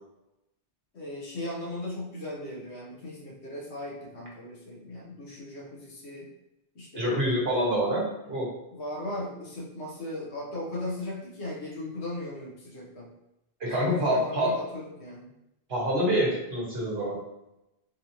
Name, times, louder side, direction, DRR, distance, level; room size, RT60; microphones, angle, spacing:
voice 1, 0.9-6.3 6.7-7.4 8.7-13.1 13.6-15.3, left 1 dB, 85° left, -4 dB, 1.4 m, -37 dB
voice 2, 7.0-8.5 13.6-14.6 15.7-17.2, equal, 70° right, -5 dB, 1.5 m, -26 dB
4.2 x 2.9 x 2.7 m, 0.88 s
omnidirectional pair, 1.1 m